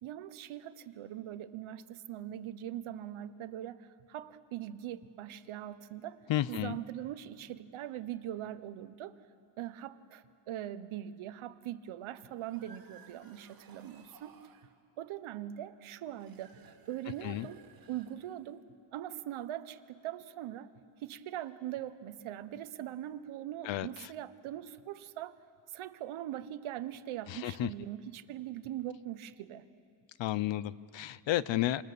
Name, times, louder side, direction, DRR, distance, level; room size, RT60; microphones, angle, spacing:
voice 1, 0.0-6.2 6.5-9.2 9.6-14.4 15.0-18.6 18.9-20.7 21.0-25.4 25.7-29.7, right 12 dB, 80° right, 12 dB, 1.1 m, -41 dB
voice 2, 6.3-6.8 17.2-17.5 23.6-24.1 27.3-27.7 30.2-31.8, left 13 dB, 65° left, 18 dB, 0.7 m, -32 dB
sound 1, 12.3-14.7 16.1-18.6, right 5 dB, 45° right, 2.1 m, -59 dB
27.5 x 26.5 x 6.8 m, 2.4 s
cardioid pair, 165°, 48 cm